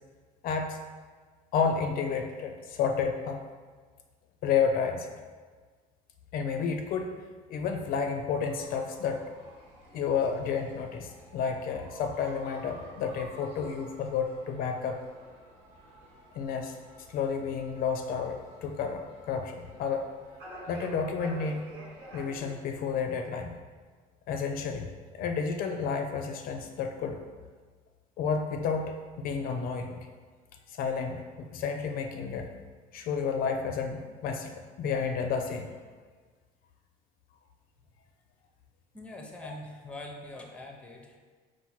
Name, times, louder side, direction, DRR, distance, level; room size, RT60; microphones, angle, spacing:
voice 1, 0.4-0.8 1.5-3.5 4.4-5.1 6.3-7.2 7.5-9.2 9.9-15.0 16.4-16.8 17.1-20.1 20.7-21.6 22.1-23.6 24.3-24.9 25.2-27.2 28.2-30.1 30.8-32.5 32.9-35.7 39.4-39.5, left 6 dB, 55° left, 5 dB, 0.4 m, -31 dB
sound 1, 8.4-22.5, right 1 dB, 80° right, 1.3 m, -50 dB
voice 2, 38.9-41.2, left 1 dB, 5° left, 2 dB, 0.5 m, -43 dB
4.4 x 2.1 x 4.2 m, 1.5 s
cardioid pair, 110°, 17 cm